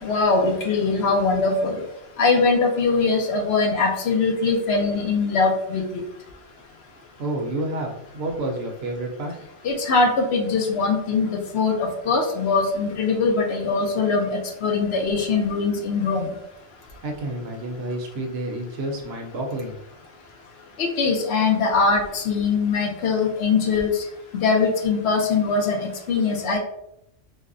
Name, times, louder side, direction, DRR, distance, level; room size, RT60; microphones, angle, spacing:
voice 1, 0.0-1.8 2.2-6.0 9.6-16.3 20.8-24.0 24.3-26.6, left 4 dB, 65° left, 2 dB, 0.8 m, -22 dB
voice 2, 7.2-9.4 17.0-19.8, right 1 dB, 65° right, 1 dB, 0.8 m, -29 dB
4.0 x 2.0 x 2.5 m, 0.81 s
omnidirectional pair, 1.2 m